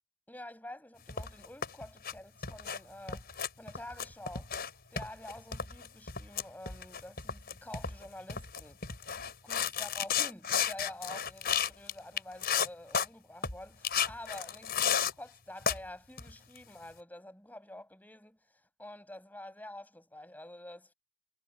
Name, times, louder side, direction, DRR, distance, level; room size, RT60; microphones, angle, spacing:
voice 1, 0.3-4.5 4.9-8.9 9.4-14.7 15.2-20.9, left 1 dB, 10° left, 7.1 m, -48 dB
sound 1, 1.1-2.1 2.4-2.8 3.1-4.7 5.0-11.9 12.2-13.1 13.4-13.6 13.8-15.1 15.6-15.8 16.2-16.6, left 7 dB, 45° left, 5.9 m, -33 dB
head